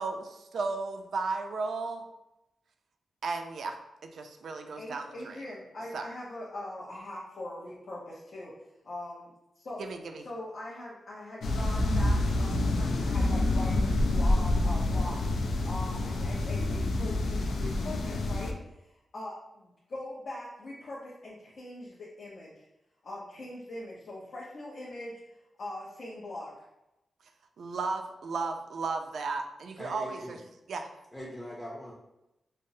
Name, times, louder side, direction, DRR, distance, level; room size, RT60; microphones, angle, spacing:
voice 1, 0.0-2.1 3.2-3.8 4.0-5.4 5.9-6.0 9.8-10.2 27.6-30.4 30.7-30.9, right 4 dB, 80° right, 5 dB, 0.4 m, -34 dB
voice 2, 4.8-8.5 8.8-9.8 10.2-15.2 15.6-22.6 23.0-25.2 25.6-26.5, left 1 dB, 60° left, -7 dB, 0.8 m, -42 dB
sound 1, 11.4-18.5, left 2 dB, 90° left, 0.4 m, -27 dB
voice 3, 29.8-30.4 31.1-31.9, equal, 10° left, -3 dB, 0.6 m, -41 dB
5.2 x 2.0 x 2.6 m, 0.92 s
wide cardioid pair, 140°, 0 cm